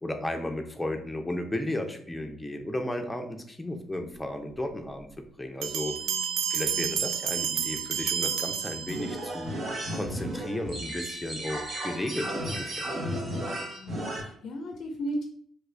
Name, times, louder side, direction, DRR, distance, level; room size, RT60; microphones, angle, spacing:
voice 1, 0.0-6.0 6.5-13.0, left 1 dB, 10° left, 5 dB, 0.5 m, -34 dB
sound 1, 5.6-9.4, right 9 dB, 80° right, 0.3 m, -30 dB
voice 2, 6.0-7.0 13.5-15.2, equal, 65° left, 3 dB, 0.4 m, -37 dB
sound 2, 8.9-14.2, right 1 dB, 50° right, 1.0 m, -34 dB
3.3 x 2.4 x 3.2 m, 0.62 s
cardioid pair, 90°, 0 cm